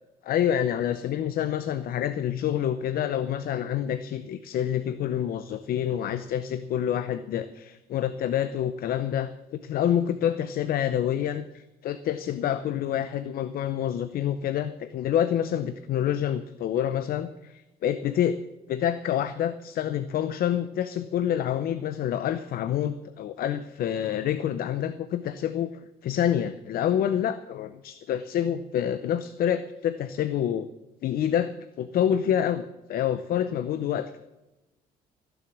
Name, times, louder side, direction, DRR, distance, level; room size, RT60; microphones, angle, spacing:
voice 1, 0.2-18.4 18.7-25.7 26.0-30.7 31.0-34.2, left 10 dB, 60° left, 12 dB, 0.7 m, -27 dB
15.5 x 7.1 x 8.5 m, 1.0 s
cardioid pair, 110°, 17 cm